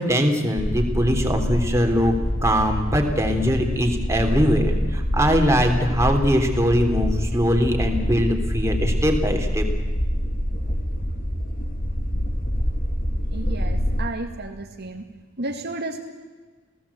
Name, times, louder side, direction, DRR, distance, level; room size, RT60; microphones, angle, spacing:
voice 1, 0.0-2.1 2.4-9.6, equal, 15° right, 3 dB, 3.3 m, -21 dB
sound 1, 0.6-14.0, equal, 45° left, 2.2 m, -25 dB
voice 2, 13.3-15.0 15.4-16.0, right 2 dB, 55° right, 4 dB, 2.1 m, -32 dB
29.0 x 17.5 x 8.5 m, 1.3 s
head